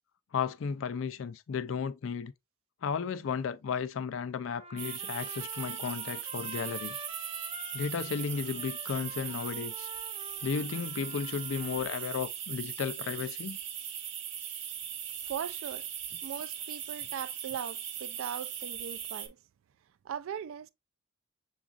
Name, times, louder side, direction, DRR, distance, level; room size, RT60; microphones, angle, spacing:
voice 1, 0.3-2.3 2.8-7.0 7.7-9.9 10.4-13.6, left 6 dB, 70° left, 0.4 m, -34 dB
Trumpet, 4.5-12.1, right 2 dB, 25° right, 0.7 m, -47 dB
sound 1, 4.8-19.3, right 9 dB, 60° right, 0.8 m, -39 dB
voice 2, 15.3-15.8 16.2-19.4 20.0-20.7, right 8 dB, 80° right, 0.3 m, -39 dB
7.0 x 2.5 x 2.3 m
head